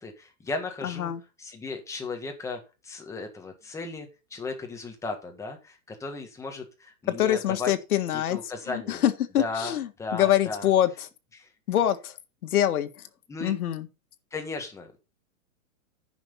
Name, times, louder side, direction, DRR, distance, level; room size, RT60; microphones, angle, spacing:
voice 1, 0.0-1.1 1.4-7.7 8.3-9.0 9.4-10.7 11.3-11.5 13.3-13.5 14.3-15.0, left 3 dB, 5° left, 1.7 m, -36 dB
voice 2, 0.8-1.2 7.1-8.4 8.7-10.9 11.7-12.2 12.4-12.9 13.4-13.9, left 11 dB, 80° left, 1.8 m, -25 dB
10.5 x 6.1 x 5.6 m
supercardioid pair, 165°, 43 cm